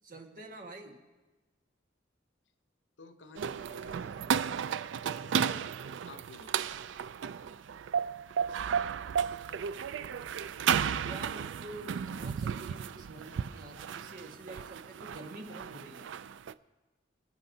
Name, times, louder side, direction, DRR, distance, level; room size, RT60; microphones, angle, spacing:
voice 1, 0.0-1.0 11.0-16.2, right 1 dB, 50° right, 2 dB, 1.6 m, -47 dB
voice 2, 3.0-4.3 5.0-5.7 6.0-6.7, left 3 dB, 75° left, 9 dB, 0.8 m, -52 dB
sound 1, 3.3-16.5, right 7 dB, 80° right, 0.4 m, -34 dB
26.5 x 8.9 x 2.8 m, 1.2 s
head